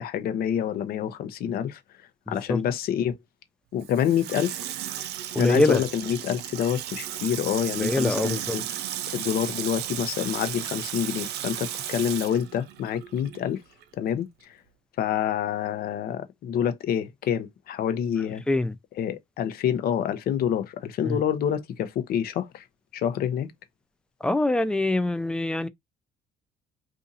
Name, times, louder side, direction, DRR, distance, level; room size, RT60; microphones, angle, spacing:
voice 1, 0.0-1.8 2.3-3.2 3.7-4.6 5.4-8.6 9.1-13.6 14.0-14.5 15.0-18.4 19.0-22.6 22.9-23.5, left 9 dB, 65° left, 0.7 m, -27 dB
voice 2, 2.3-2.6 5.3-5.8 7.7-8.6 18.5-18.8 21.0-21.2 24.2-25.7, left 2 dB, 5° left, 0.3 m, -24 dB
Water tap faucet / Sink (filling or washing), 3.8-13.5 13.8-13.9, right 11 dB, 80° right, 0.5 m, -35 dB
2.7 x 2.5 x 3.9 m
cardioid pair, 110°, 17 cm